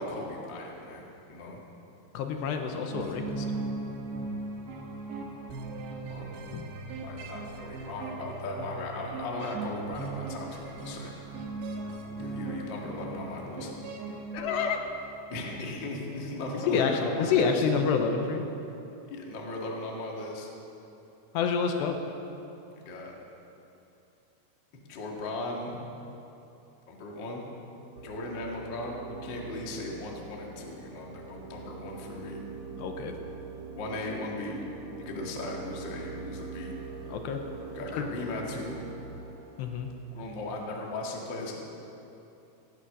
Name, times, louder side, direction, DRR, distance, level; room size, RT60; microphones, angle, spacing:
voice 1, 0.0-1.6 6.1-6.4 7.0-11.2 12.2-13.7 15.3-17.6 19.1-20.5 22.7-23.1 24.9-25.8 26.9-27.5 28.0-32.4 33.7-34.7 35.0-36.7 37.7-38.8 40.1-41.5, left 2 dB, 45° left, -1 dB, 1.5 m, -37 dB
voice 2, 2.1-3.5 6.5-6.7 14.3-14.8 16.5-18.4 21.3-22.0 32.8-33.1 37.1-37.4 37.9-38.1 39.6-39.9, left 6 dB, 80° left, 4 dB, 3.1 m, -28 dB
sound 1, 2.9-15.2, right 3 dB, 75° right, 3.5 m, -38 dB
sound 2, 28.0-39.9, right 4 dB, 50° right, 2.7 m, -43 dB
16.0 x 13.0 x 6.2 m, 2.9 s
omnidirectional pair, 5.1 m